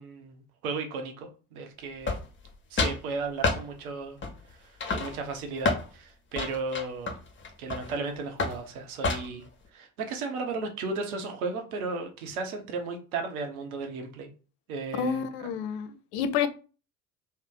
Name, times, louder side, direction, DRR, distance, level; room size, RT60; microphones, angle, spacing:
voice 1, 0.0-2.1 2.7-4.2 4.5-7.2 7.6-9.4 9.7-14.3 14.7-15.2, right 3 dB, 75° right, 0.8 m, -35 dB
sound 1, 2.0-2.5 2.8-3.0 3.4-3.6 4.2-4.5 4.8-5.9 6.3-8.0 8.4-8.6 9.0-9.5, left 3 dB, 25° left, 0.8 m, -29 dB
voice 2, 14.9-16.5, left 7 dB, 60° left, 0.6 m, -29 dB
2.7 x 2.0 x 3.8 m
figure-of-eight pair, 55°, 43 cm